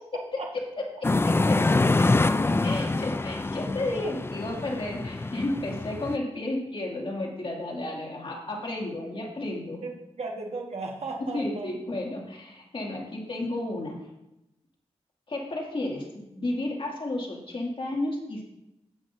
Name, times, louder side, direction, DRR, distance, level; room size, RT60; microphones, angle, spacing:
voice 1, 0.3-0.6 1.0-9.8 11.3-14.0 15.3-18.4, left 2 dB, 50° left, -2 dB, 2.5 m, -33 dB
sound 1, 1.0-6.2, left 2 dB, 20° left, 0.4 m, -25 dB
voice 2, 9.8-11.7, right 3 dB, 70° right, 0 dB, 1.6 m, -36 dB
17.5 x 6.3 x 2.7 m, 0.90 s
wide cardioid pair, 80°, 11 cm